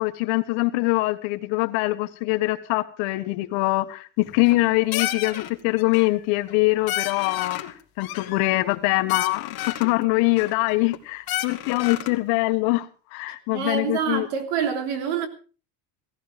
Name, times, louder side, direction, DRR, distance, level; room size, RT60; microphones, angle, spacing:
voice 1, 0.0-14.3, left 21 dB, 75° left, 1.6 m, -23 dB
sound 1, 4.2-4.6 4.9-5.5 5.8-6.2 6.5-6.6 6.9-7.7 8.0-8.8 9.1-9.9 10.4-11.0 11.3-12.2, left 14 dB, 50° left, 2.2 m, -31 dB
voice 2, 13.5-15.3, right 7 dB, 90° right, 3.3 m, -26 dB
17.5 x 14.5 x 5.0 m
cardioid pair, 170°, 47 cm